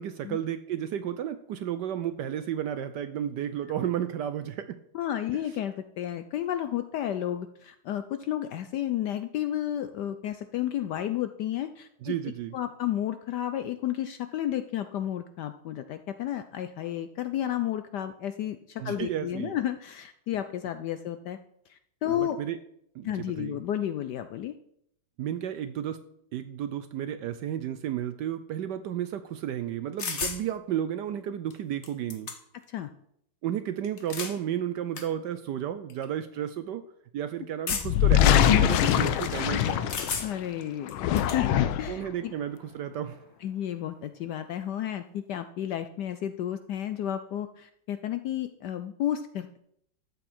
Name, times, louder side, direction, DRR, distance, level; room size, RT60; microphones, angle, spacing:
voice 1, 0.0-4.8 12.0-12.6 18.8-19.6 22.2-22.6 22.9-23.6 25.2-26.0 26.3-32.3 33.4-36.8 37.1-39.9 41.9-43.2, right 10 dB, 75° right, 11 dB, 1.1 m, -32 dB
voice 2, 4.9-12.1 12.5-21.4 21.7-22.4 23.0-24.5 32.7-32.9 37.7-37.8 40.2-42.3 43.4-49.6, left 11 dB, 75° left, 10 dB, 1.0 m, -32 dB
sound 1, 30.0-30.4 31.5-31.6 31.8-32.6 33.8-34.4 35.0-35.1 35.9-36.1 37.7-38.1 39.9-40.5 40.9-41.4, left 5 dB, 40° left, 1.2 m, -33 dB
sound 2, 37.8-40.4 40.9-42.0, left 11 dB, 90° left, 1.5 m, -23 dB
12.5 x 8.2 x 4.3 m, 0.73 s
omnidirectional pair, 2.2 m